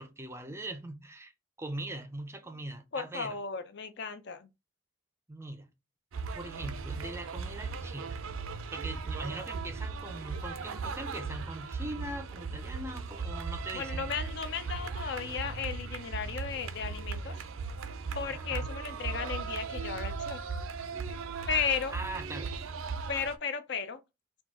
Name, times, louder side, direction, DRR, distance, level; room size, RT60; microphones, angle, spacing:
voice 1, 0.0-1.3 1.6-3.3 5.3-5.7 6.3-8.2 8.7-14.1 18.3-18.7 21.9-22.5, right 1 dB, 10° right, 0.5 m, -41 dB
voice 2, 2.9-4.5 13.7-17.4 18.1-20.4 21.5-22.0 23.1-24.0, left 6 dB, 55° left, 0.5 m, -35 dB
sound 1, 6.1-23.4, right 4 dB, 80° right, 0.5 m, -37 dB
4.3 x 2.3 x 4.5 m
head